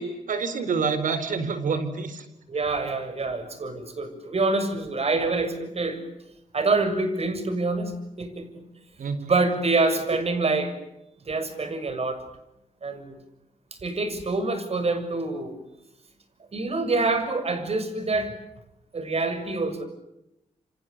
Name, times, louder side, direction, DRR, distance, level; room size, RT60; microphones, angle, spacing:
voice 1, 0.0-2.3 9.0-9.3 9.9-10.0, right 5 dB, 80° right, 12 dB, 4.5 m, -28 dB
voice 2, 2.5-6.0 6.5-8.4 9.3-10.7 11.2-12.2 12.8-13.2 13.8-15.5 16.5-18.3 18.9-19.9, right 3 dB, 50° right, 10 dB, 6.8 m, -26 dB
28.5 x 28.0 x 6.9 m, 0.88 s
cardioid pair, 85°, 14 cm